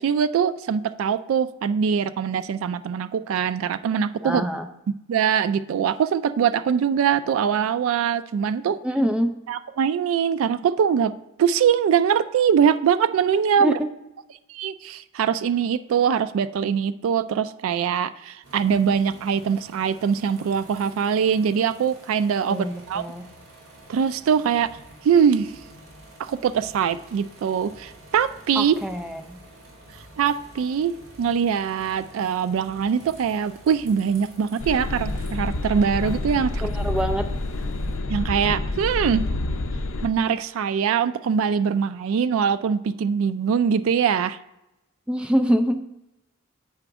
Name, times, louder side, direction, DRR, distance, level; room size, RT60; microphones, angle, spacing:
voice 1, 0.0-4.5 5.1-8.8 9.5-11.1 11.4-13.8 14.5-23.0 23.9-24.7 25.0-25.5 26.2-28.8 30.2-30.9 31.2-36.7 38.1-39.2 40.0-44.4, right 7 dB, 75° right, 12 dB, 0.3 m, -22 dB
voice 2, 4.2-4.7 8.8-9.4 13.6-13.9 22.5-23.2 28.6-29.4 36.6-37.3 45.1-45.8, equal, 5° right, 5 dB, 0.4 m, -25 dB
sound 1, 18.4-38.0, right 1 dB, 60° right, 2.7 m, -48 dB
sound 2, 34.6-40.1, left 2 dB, 70° left, 0.5 m, -28 dB
7.9 x 5.0 x 3.5 m, 0.91 s
head